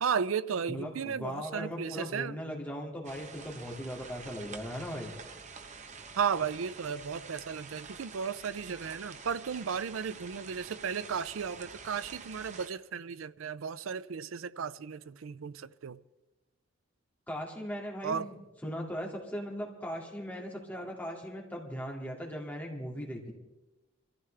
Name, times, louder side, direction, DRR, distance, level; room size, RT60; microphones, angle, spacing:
voice 1, 0.0-2.4 6.2-16.0 18.0-18.3, right 6 dB, 85° right, 0.5 m, -34 dB
voice 2, 0.7-5.2 17.3-18.4 18.6-23.3, equal, 10° left, 2.2 m, -38 dB
sound 1, 3.0-12.7, right 5 dB, 35° right, 0.8 m, -48 dB
24.5 x 14.5 x 3.3 m
head